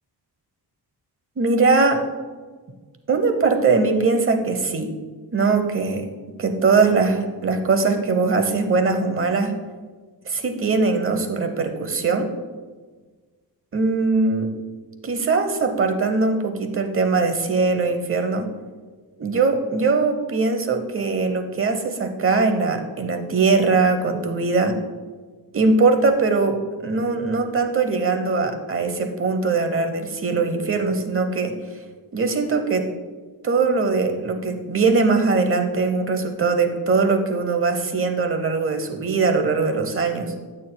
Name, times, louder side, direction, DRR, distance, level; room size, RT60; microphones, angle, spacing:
voice 1, 1.4-2.0 3.1-4.9 5.3-6.1 6.4-9.6 10.3-12.3 13.7-14.5 15.0-18.5 19.2-24.8 25.5-31.5 32.1-32.9 33.4-40.3, right 4 dB, 30° right, 6 dB, 0.8 m, -21 dB
13.0 x 8.7 x 2.2 m, 1.4 s
wide cardioid pair, 175°, 40 cm